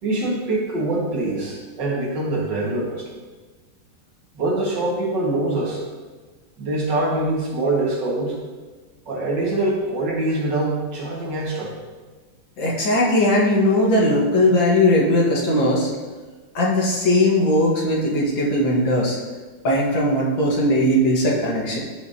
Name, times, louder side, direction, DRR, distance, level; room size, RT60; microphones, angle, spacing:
voice 1, 0.0-3.1 4.3-5.8 6.6-8.4 9.1-11.7, right 2 dB, 70° right, -4 dB, 2.5 m, -24 dB
voice 2, 12.6-15.9 16.5-19.2 19.6-21.8, left 1 dB, 80° left, -4 dB, 2.5 m, -19 dB
14.5 x 5.8 x 2.9 m, 1.4 s
omnidirectional pair, 2.0 m